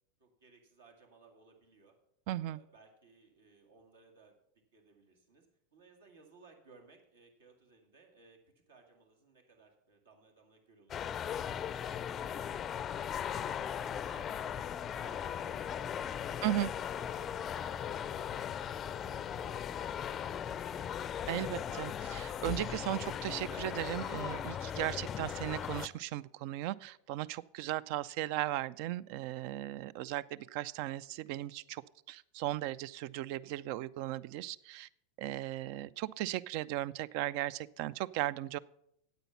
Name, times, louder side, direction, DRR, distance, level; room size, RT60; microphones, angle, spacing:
voice 1, 0.2-1.9 2.4-4.4 4.7-5.5 5.7-13.1 13.5-21.1, right 4 dB, 80° right, 2 dB, 2.0 m, -62 dB
voice 2, 2.3-2.6 16.4-16.7 21.3-31.8 32.1-34.9 35.2-38.6, right 14 dB, 60° right, 20 dB, 0.4 m, -37 dB
sound 1, 10.9-25.9, left 9 dB, 35° left, 0.4 m, -38 dB
9.0 x 8.3 x 5.7 m, 0.75 s
hypercardioid pair, 95°, 0 cm